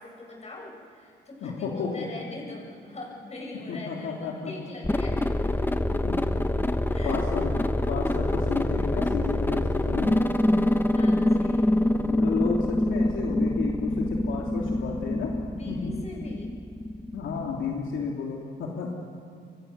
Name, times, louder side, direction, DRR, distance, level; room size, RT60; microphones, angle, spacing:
voice 1, 0.0-5.2 6.9-7.2 10.5-10.6 10.9-11.7 15.5-16.5, left 2 dB, 35° left, -1 dB, 7.8 m, -42 dB
voice 2, 1.4-2.0 3.7-4.5 6.0-6.3 7.0-10.2 12.0-15.3 15.7-15.9 17.1-18.9, left 5 dB, 75° left, -1 dB, 3.1 m, -32 dB
sound 1, 4.8-18.1, left 1 dB, 10° left, 1.3 m, -25 dB
28.0 x 23.5 x 6.9 m, 2.4 s
cardioid pair, 90°, 20 cm